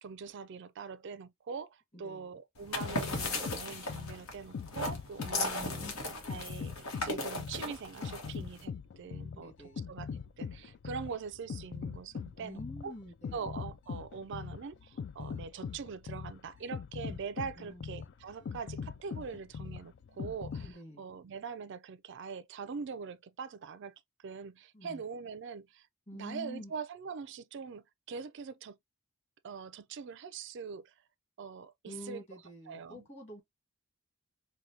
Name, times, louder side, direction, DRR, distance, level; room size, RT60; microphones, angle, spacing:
voice 1, 0.0-5.9 6.3-10.1 10.4-12.9 13.3-25.9 26.1-28.8 29.4-30.9 31.4-32.4 32.7-33.1, right 5 dB, 55° right, 0.4 m, -43 dB
sound 1, 2.6-8.6, left 2 dB, 80° left, 1.2 m, -37 dB
sound 2, 2.7-20.7, left 6 dB, 55° left, 0.3 m, -41 dB
voice 2, 5.4-6.1 9.0-9.8 12.4-13.5 17.6-17.9 20.6-21.0 24.7-25.0 26.1-26.7 31.9-33.4, equal, 30° left, 1.8 m, -47 dB
4.8 x 2.2 x 2.7 m
head